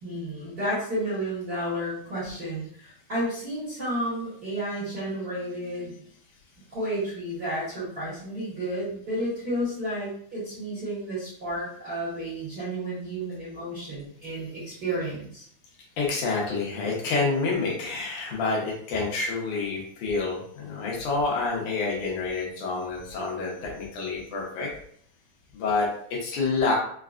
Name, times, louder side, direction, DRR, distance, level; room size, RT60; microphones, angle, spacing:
voice 1, 0.0-5.9 6.7-15.4, right 1 dB, 40° right, -10 dB, 1.5 m, -31 dB
voice 2, 16.0-24.7 25.5-26.7, left 3 dB, 75° left, -3 dB, 2.3 m, -28 dB
5.7 x 2.2 x 2.4 m, 0.63 s
omnidirectional pair, 3.6 m